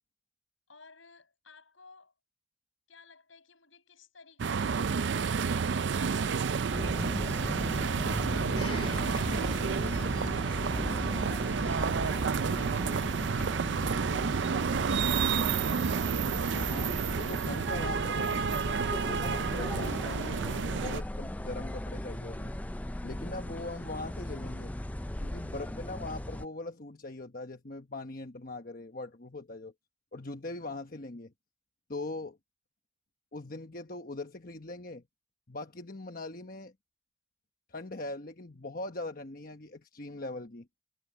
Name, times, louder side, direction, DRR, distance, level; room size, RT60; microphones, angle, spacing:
voice 1, 0.7-2.1 2.9-10.5 10.8-12.5 12.9-15.5, left 4 dB, 85° left, 7.6 m, -57 dB
sound 1, 4.4-21.0, right 5 dB, 65° right, 0.4 m, -30 dB
sound 2, 6.7-26.5, left 1 dB, 10° left, 0.4 m, -37 dB
Domestic sounds home sounds, 8.6-13.4 14.2-14.3, left 4 dB, 30° left, 2.8 m, -50 dB
voice 2, 16.5-18.5 19.0-22.5 23.0-24.7 25.2-29.7 30.1-31.3 31.9-32.4 33.3-35.0 35.5-36.7 37.7-40.7, left 2 dB, 45° left, 1.2 m, -41 dB
head